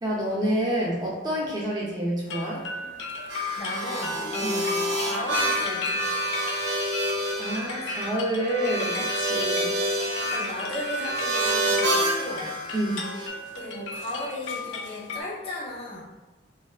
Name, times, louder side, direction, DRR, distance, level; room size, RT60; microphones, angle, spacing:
voice 1, 0.0-2.6 4.4-4.5 7.4-9.7 12.7-13.0, right 1 dB, 20° right, -5 dB, 0.6 m, -28 dB
sound 1, 2.3-15.2, left 2 dB, 70° left, 0.4 m, -35 dB
sound 2, 3.3-13.3, right 1 dB, 70° right, 0.6 m, -28 dB
voice 2, 3.5-6.2 7.8-7.9 10.2-12.5 13.5-16.0, left 1 dB, 35° left, -5 dB, 0.6 m, -36 dB
3.3 x 2.4 x 2.3 m, 1.2 s
head